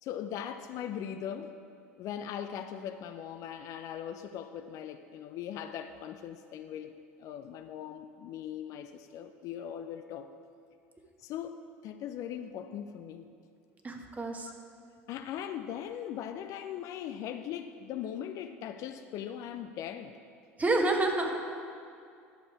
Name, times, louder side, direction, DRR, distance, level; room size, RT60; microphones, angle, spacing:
voice 1, 0.0-1.6 2.0-10.3 11.2-13.3 15.1-20.2, left 9 dB, 50° left, 9 dB, 0.5 m, -40 dB
voice 2, 13.8-14.5 20.6-21.3, right 2 dB, 20° right, 3 dB, 1.4 m, -28 dB
11.0 x 6.8 x 4.7 m, 2.4 s
hypercardioid pair, 70°, 7 cm